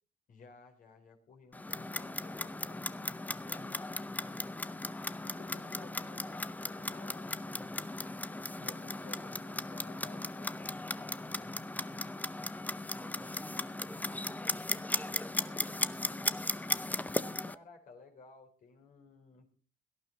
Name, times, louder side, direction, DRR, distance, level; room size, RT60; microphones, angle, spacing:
voice 1, 0.3-4.2 5.2-7.8 8.5-11.6 17.4-19.5, left 4 dB, 50° left, 3 dB, 4.3 m, -56 dB
Clock, 1.5-17.6, left 2 dB, 10° left, 0.7 m, -37 dB
voice 2, 13.0-15.8, right 1 dB, 10° right, 3 dB, 2.4 m, -54 dB
17.5 x 12.0 x 4.0 m, 0.38 s
cardioid pair, 110°, 17 cm